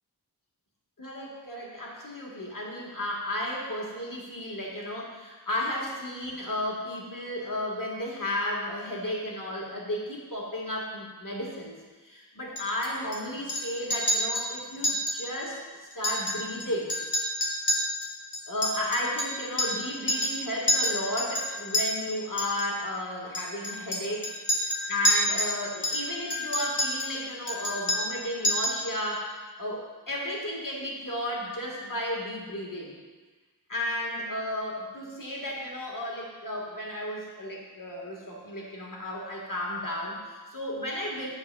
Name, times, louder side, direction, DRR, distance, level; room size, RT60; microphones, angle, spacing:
voice 1, 1.0-11.7 12.0-15.6 15.9-16.9 18.5-32.9 33.7-41.3, left 1 dB, 50° left, -3 dB, 1.6 m, -33 dB
Chink clink, 12.6-13.2 13.5-13.6 13.9-14.5 14.8-15.2 15.4-15.5 15.9-16.6 16.9-19.8 20.1-20.4 20.7-21.8 22.4-22.7 23.3-25.5 25.8-27.1 27.5-28.2 28.4-28.8, left 1 dB, 75° left, 1.3 m, -28 dB
9.1 x 6.5 x 2.3 m, 1.3 s
wide cardioid pair, 45°, 41 cm